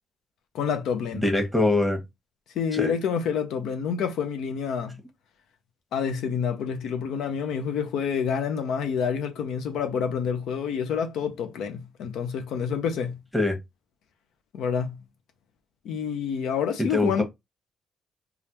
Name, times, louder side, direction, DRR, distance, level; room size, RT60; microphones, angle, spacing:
voice 1, 0.5-1.2 2.5-5.0 5.9-13.2 14.5-15.0 15.8-17.2, left 7 dB, 80° left, 0.5 m, -28 dB
voice 2, 1.2-2.0 2.7-2.9 13.3-13.6 16.8-17.2, left 2 dB, ahead, 1.2 m, -23 dB
3.3 x 2.3 x 2.7 m
cardioid pair, 90°, 0 cm